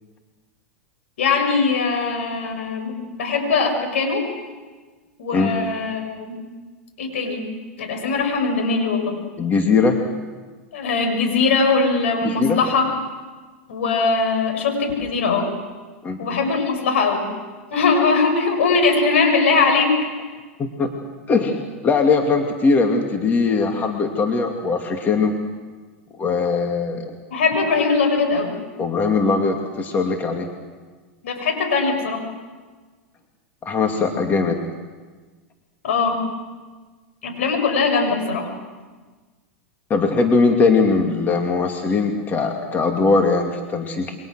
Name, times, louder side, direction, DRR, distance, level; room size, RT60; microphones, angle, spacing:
voice 1, 1.2-4.2 5.2-6.4 7.0-7.5 7.8-9.2 10.7-12.9 13.7-15.5 16.2-17.2 17.7-19.9 27.3-28.5 31.2-32.2 35.8-36.2 37.2-38.5, left 4 dB, 70° left, 4 dB, 6.7 m, -20 dB
voice 2, 9.4-10.0 12.2-12.6 16.0-16.3 20.6-20.9 21.3-25.3 26.2-27.1 28.8-30.5 33.6-34.6 39.9-44.1, left 4 dB, 25° left, 3 dB, 2.7 m, -20 dB
28.5 x 23.5 x 6.5 m, 1.4 s
hypercardioid pair, 105°, 7 cm